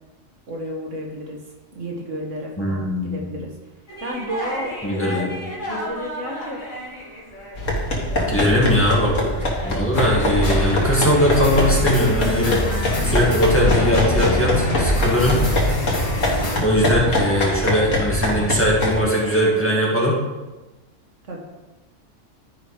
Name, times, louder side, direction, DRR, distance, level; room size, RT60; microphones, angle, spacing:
voice 1, 0.5-1.4 1.7-3.6 4.0-5.3 5.6-6.6 8.1-8.6 21.2-21.4, equal, 75° right, -1 dB, 1.9 m, -32 dB
voice 2, 2.6-3.2 4.8-5.3 8.3-9.1 9.6-15.4 16.6-20.2, equal, 10° left, -5 dB, 2.0 m, -20 dB
sound 1, 3.9-19.7, equal, 40° left, 2.4 m, -36 dB
sound 2, 7.6-19.0, left 1 dB, 80° left, 2.0 m, -24 dB
sound 3, 9.9-16.6, left 1 dB, 60° left, 2.2 m, -24 dB
12.0 x 5.1 x 4.9 m, 1.1 s
omnidirectional pair, 1.3 m